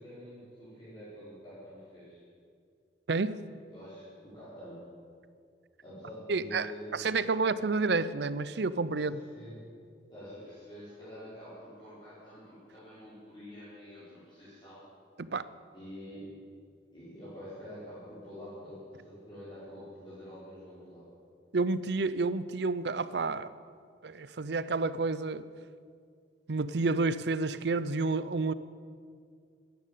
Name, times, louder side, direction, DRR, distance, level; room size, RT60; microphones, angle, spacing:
voice 1, 0.0-2.2 3.7-4.8 5.8-7.0 9.1-9.6 10.1-14.9 15.7-16.3 16.9-21.0, equal, 25° left, -12 dB, 4.9 m, -47 dB
voice 2, 3.1-3.4 6.3-9.2 15.2-15.5 21.5-23.5 24.0-25.4 26.5-28.5, right 3 dB, 65° right, 16 dB, 0.6 m, -30 dB
13.5 x 10.5 x 9.2 m, 2.2 s
head